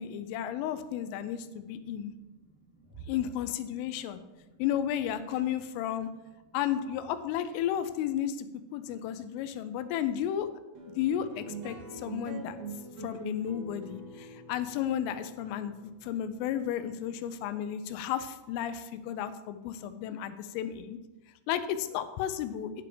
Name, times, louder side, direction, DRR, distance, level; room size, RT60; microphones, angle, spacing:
voice 1, 0.0-2.1 3.1-4.2 4.6-6.1 6.5-8.5 8.7-10.5 10.9-12.6 13.0-15.7 16.0-21.0 21.5-22.7, left 10 dB, 85° left, 11 dB, 3.2 m, -33 dB
voice 2, 1.2-1.9 2.2-3.1 4.1-4.6, right 6 dB, 20° right, -8 dB, 1.7 m, -53 dB
sound 1, 10.7-17.4, right 2 dB, 90° right, 1.4 m, -44 dB
10.0 x 6.8 x 4.9 m, 1.1 s
omnidirectional pair, 5.7 m